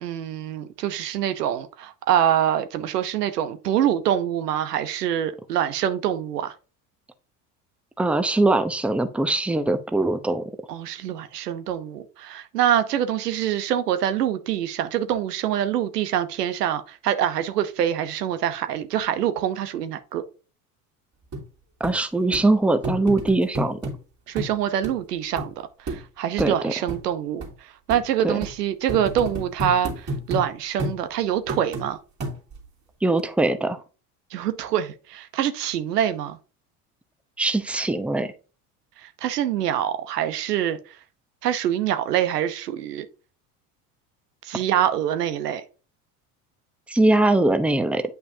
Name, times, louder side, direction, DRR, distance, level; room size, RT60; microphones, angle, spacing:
voice 1, 0.0-6.5 10.7-20.2 24.3-27.4 27.9-32.0 34.3-36.4 39.0-40.8 41.4-43.1 44.4-45.6, right 10 dB, 85° right, 0.9 m, -25 dB
voice 2, 8.0-10.4 21.8-23.8 26.4-26.7 28.2-28.4 33.0-33.8 37.4-38.3 46.9-48.0, right 2 dB, 5° right, 0.7 m, -21 dB
sound 1, 21.3-21.4 21.8-21.9 22.3-22.5 22.8-24.0 24.4-24.5 24.8-24.9 25.4-25.5 25.9-26.0 26.4-26.5 26.9-27.0 27.4-27.5 27.9-28.0 28.4-28.5 28.9-30.5 30.8-31.0 31.5-31.9 32.2-32.7 33.2-33.3, right 1 dB, 35° right, 2.9 m, -30 dB
9.0 x 5.5 x 2.7 m
hypercardioid pair, 75°, 46 cm